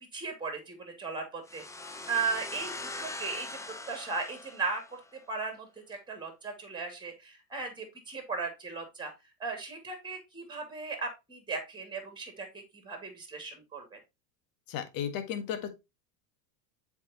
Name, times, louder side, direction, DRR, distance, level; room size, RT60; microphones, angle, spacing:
voice 1, 0.1-3.5 3.9-4.8 5.3-9.1 9.4-14.0, right 4 dB, 10° right, 2.4 m, -37 dB
sound 1, 1.5-5.2, left 2 dB, 5° left, 0.6 m, -42 dB
voice 2, 14.7-15.7, left 8 dB, 45° left, 1.5 m, -34 dB
7.4 x 5.0 x 2.9 m
supercardioid pair, 115°, 48 cm